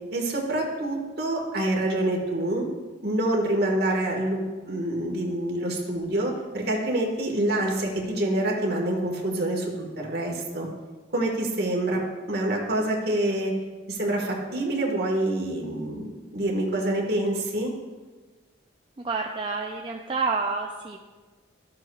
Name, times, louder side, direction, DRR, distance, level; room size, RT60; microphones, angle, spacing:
voice 1, 0.1-2.7 3.0-10.7 11.1-12.0 12.3-13.5 13.9-17.7, right 1 dB, 55° right, 0 dB, 1.6 m, -26 dB
voice 2, 19.0-21.0, right 4 dB, 25° right, 0 dB, 0.4 m, -29 dB
12.5 x 7.6 x 2.4 m, 1.3 s
head